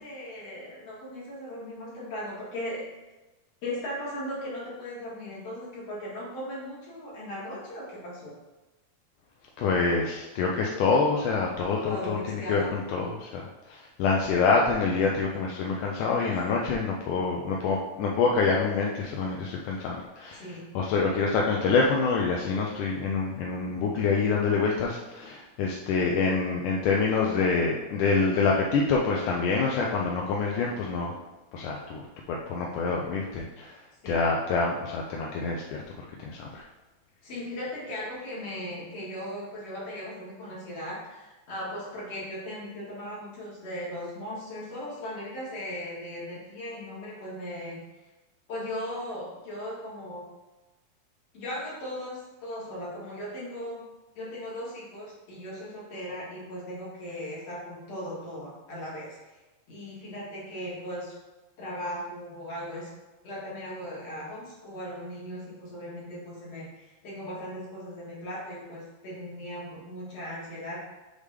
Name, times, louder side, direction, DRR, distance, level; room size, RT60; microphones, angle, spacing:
voice 1, 0.0-2.8 3.6-8.3 11.9-12.8 20.3-20.6 34.0-34.3 37.2-48.1 48.5-50.2 51.3-53.8 54.2-59.4 59.7-61.1 61.6-62.9 63.2-70.8, equal, 55° left, -6 dB, 2.5 m, -38 dB
voice 2, 9.6-20.4 20.8-31.2 31.5-33.7 34.1-36.6, left 4 dB, 80° left, -1 dB, 2.0 m, -26 dB
6.6 x 3.6 x 4.9 m, 1.1 s
omnidirectional pair, 4.0 m